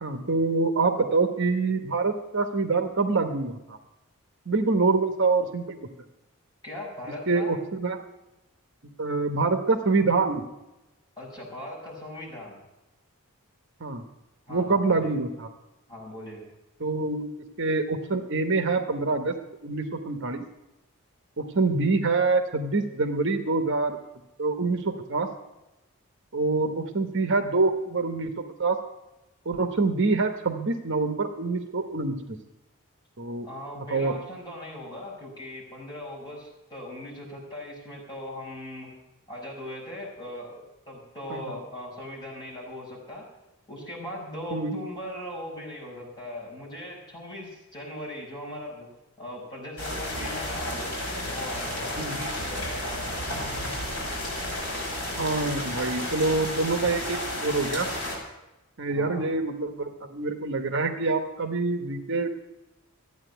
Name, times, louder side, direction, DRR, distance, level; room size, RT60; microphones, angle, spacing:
voice 1, 0.0-3.8 4.5-5.8 7.3-8.0 9.0-10.4 13.8-14.0 14.5-15.5 16.8-17.3 17.6-19.3 19.6-20.4 21.4-24.0 24.4-25.3 26.3-28.8 29.4-32.2 33.2-33.5 33.8-34.1 41.3-41.6 44.5-44.8 52.0-52.2 55.2-57.9 58.8-62.4, right 3 dB, 55° right, 7 dB, 1.0 m, -26 dB
voice 2, 6.6-7.5 11.2-12.6 14.5-15.1 15.9-16.5 33.4-38.9 39.3-43.3 43.7-48.9 49.2-50.9 51.3-53.2 58.9-59.3, left 1 dB, 20° left, -4 dB, 5.3 m, -39 dB
sound 1, 49.8-58.2, left 1 dB, 50° left, 5.5 m, -32 dB
13.5 x 9.2 x 7.9 m, 1.0 s
head